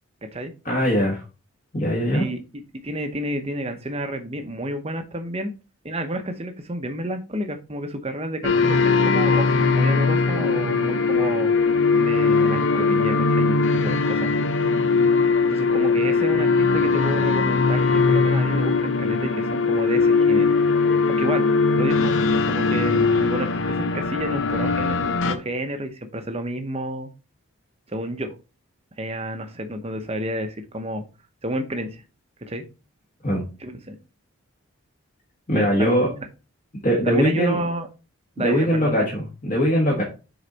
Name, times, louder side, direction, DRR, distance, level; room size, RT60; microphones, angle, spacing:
voice 1, 0.6-1.2 1.7-2.2 33.2-33.4 35.5-36.1 36.8-37.6 38.4-40.0, equal, 35° left, -3 dB, 1.5 m, -21 dB
voice 2, 2.1-5.5 5.8-14.3 15.5-20.5 21.1-27.1 27.9-28.3 29.0-31.0 31.4-32.0 32.4-32.6 33.6-34.0 35.5-36.3 37.0-37.9 38.4-39.1 39.9-40.0, right 1 dB, 30° right, 6 dB, 0.8 m, -30 dB
sound 1, 8.4-25.3, left 4 dB, 60° left, 0.7 m, -20 dB
6.8 x 4.0 x 4.0 m, 0.32 s
head